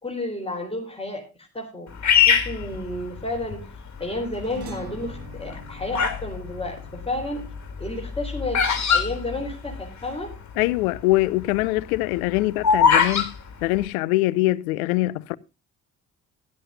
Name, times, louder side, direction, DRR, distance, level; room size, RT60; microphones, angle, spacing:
voice 1, 0.0-1.9 2.1-3.7 4.0-7.4 7.8-10.3, left 2 dB, 15° left, 3.9 m, -31 dB
Bird vocalization bird call bird song, 2.0-3.5 4.2-4.6 5.4-6.3 6.6-10.1 10.3-10.4 10.6-11.0 11.4-13.3, left 7 dB, 40° left, 2.8 m, -21 dB
sound 1, 4.3-9.0, right 4 dB, 60° right, 3.6 m, -44 dB
voice 2, 10.6-13.3 13.6-15.4, left 19 dB, 70° left, 0.6 m, -23 dB
16.5 x 12.0 x 2.6 m
figure-of-eight pair, 45°, 44 cm